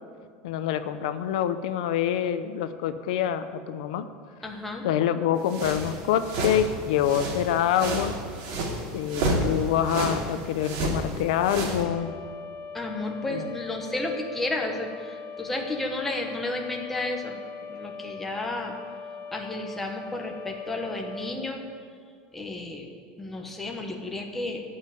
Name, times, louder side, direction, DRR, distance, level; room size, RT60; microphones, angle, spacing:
voice 1, 0.4-4.1 4.8-8.1 8.9-12.1 13.3-13.5, left 10 dB, 75° left, 10 dB, 0.6 m, -26 dB
voice 2, 4.4-4.9 12.7-17.4 17.7-18.7 19.3-21.6 22.3-22.9 23.2-24.6, left 2 dB, 5° left, 1 dB, 1.0 m, -32 dB
sound 1, 5.5-11.8, right 1 dB, 50° right, 2.5 m, -31 dB
sound 2, 11.8-21.4, left 5 dB, 35° left, 1.0 m, -40 dB
14.5 x 5.6 x 9.2 m, 2.1 s
supercardioid pair, 175°, 4 cm